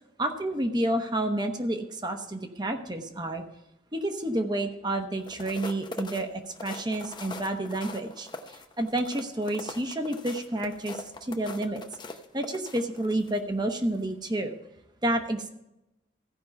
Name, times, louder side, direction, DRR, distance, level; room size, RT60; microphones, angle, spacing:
voice 1, 0.2-3.4 3.9-11.8 12.3-14.6 15.0-15.5, right 1 dB, 25° right, 5 dB, 1.0 m, -30 dB
sound 1, 5.2-13.4 13.8-14.0, left 2 dB, 25° left, 0.7 m, -42 dB
15.5 x 5.5 x 5.8 m, 0.90 s
head